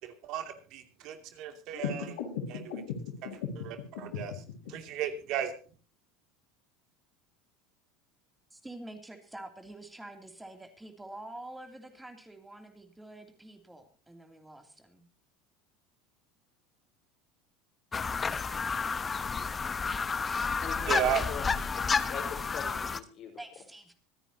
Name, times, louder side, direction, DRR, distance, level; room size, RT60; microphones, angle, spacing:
voice 1, 0.0-2.2 2.5-2.8 3.2-3.3 3.6-5.5 20.9-21.2, right 9 dB, 60° right, 6 dB, 2.6 m, -35 dB
sound 1, 1.7-4.7, left 6 dB, 85° left, 3.7 m, -37 dB
voice 2, 8.5-15.1 23.4-23.9, right 1 dB, 10° right, 6 dB, 2.9 m, -47 dB
sound 2, 17.9-23.0, left 5 dB, 25° left, 1.0 m, -31 dB
voice 3, 20.6-21.8 22.1-23.3, left 7 dB, 50° left, 4 dB, 4.8 m, -42 dB
24.5 x 9.9 x 2.9 m, 0.37 s
supercardioid pair, 95°, 0 cm